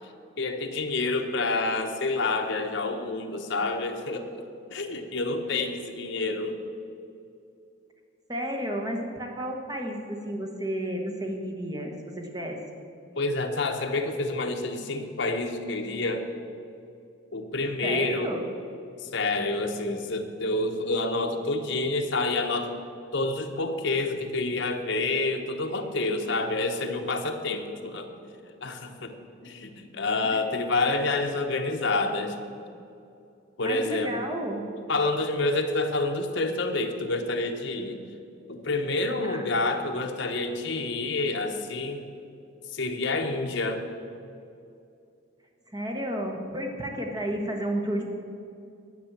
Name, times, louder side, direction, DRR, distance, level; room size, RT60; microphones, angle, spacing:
voice 1, 0.4-6.6 13.2-16.2 17.3-18.3 19.0-22.7 23.1-28.1 28.6-29.1 29.4-32.4 33.6-34.1 34.9-38.0 38.5-42.0 42.7-43.8, left 2 dB, 60° left, 4 dB, 0.9 m, -28 dB
voice 2, 8.3-12.6 17.8-18.5 33.6-34.6 39.2-39.4 45.7-48.1, equal, 20° right, 2 dB, 1.1 m, -32 dB
11.0 x 6.1 x 7.3 m, 2.6 s
head